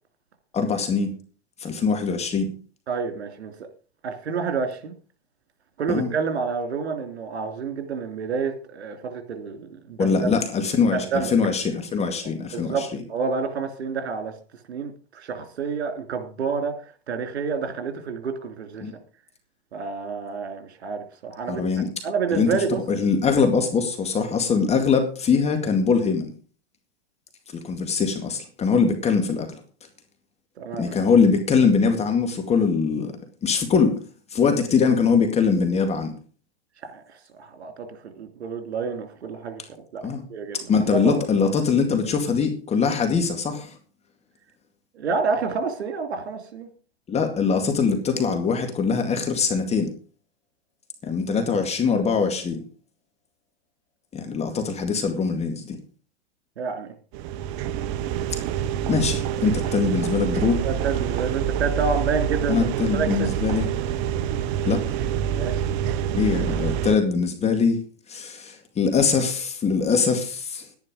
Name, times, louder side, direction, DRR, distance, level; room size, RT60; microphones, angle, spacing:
voice 1, 0.5-1.1 1.6-2.5 5.9-6.1 10.0-13.0 18.8-18.9 21.5-21.9 22.3-26.3 27.5-29.6 30.7-33.1 33.4-34.0 34.3-36.1 40.0-40.2 40.5-43.8 47.1-49.9 51.0-52.6 54.1-55.8 58.9-60.6 62.5-63.7 64.7-64.9 66.1-67.8 68.1-70.6, left 5 dB, 20° left, 6 dB, 2.2 m, -22 dB
voice 2, 2.9-3.7 4.0-4.9 5.8-10.1 10.9-11.3 12.5-14.3 14.7-16.7 17.1-18.8 19.7-21.6 22.0-22.8 30.6-31.0 36.8-39.6 39.9-40.0 40.3-41.2 44.9-46.7 56.6-56.9 60.6-62.7 62.9-63.3 65.4-65.7, right 5 dB, 80° right, 7 dB, 3.1 m, -29 dB
sound 1, 57.1-67.0, right 10 dB, 40° right, 1.0 m, -26 dB
11.5 x 10.5 x 5.1 m, 0.37 s
hypercardioid pair, 130°, 32 cm